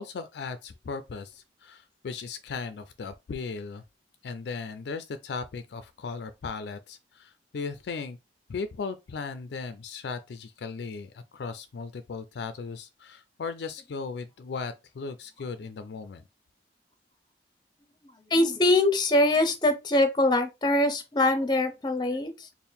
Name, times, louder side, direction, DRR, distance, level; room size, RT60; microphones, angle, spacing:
voice 1, 0.0-3.8 4.2-8.2 8.5-16.2, left 4 dB, 65° left, 0.4 m, -37 dB
voice 2, 18.3-22.5, left 1 dB, 25° left, 0.6 m, -23 dB
4.4 x 2.1 x 3.5 m
head